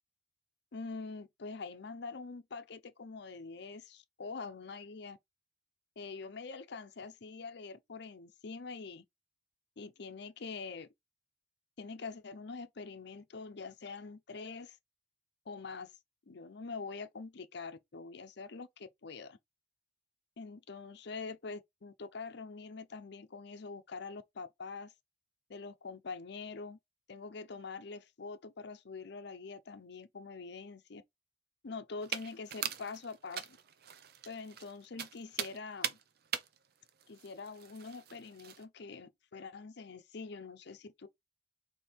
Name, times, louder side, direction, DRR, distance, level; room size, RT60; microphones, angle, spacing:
voice 1, 0.7-5.2 6.0-9.0 9.8-10.9 11.8-14.8 15.5-15.9 16.3-19.4 20.4-24.9 25.5-26.8 27.1-31.0 31.6-33.6 34.2-36.0 37.1-41.1, left 4 dB, 65° left, 0.7 m, -45 dB
sound 1, 32.0-38.6, right 9 dB, 60° right, 0.6 m, -42 dB
4.3 x 2.8 x 3.5 m
head